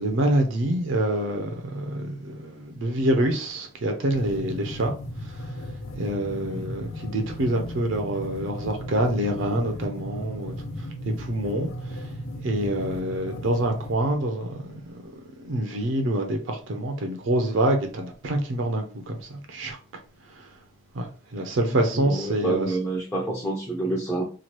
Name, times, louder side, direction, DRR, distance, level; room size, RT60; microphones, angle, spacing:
voice 1, 0.0-4.9 6.0-10.5 11.1-12.0 12.4-15.0 15.4-18.8 19.3-19.8 21.0-21.1 21.3-22.7, right 1 dB, 65° right, 0.5 m, -26 dB
sound 1, 4.1-13.9, equal, 80° left, 0.5 m, -36 dB
voice 2, 21.9-24.2, right 2 dB, 15° left, 0.4 m, -28 dB
2.9 x 2.2 x 3.0 m
head